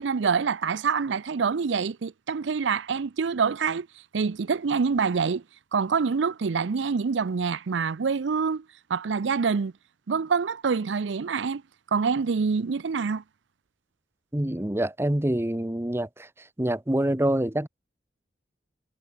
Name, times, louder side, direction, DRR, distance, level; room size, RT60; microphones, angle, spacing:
voice 1, 0.0-3.9 4.1-5.4 5.7-8.6 8.9-9.7 10.1-11.6 11.9-13.2, right 5 dB, 85° right, 0.5 m, -26 dB
voice 2, 14.3-16.3 16.6-17.7, right 1 dB, 15° right, 0.8 m, -26 dB
head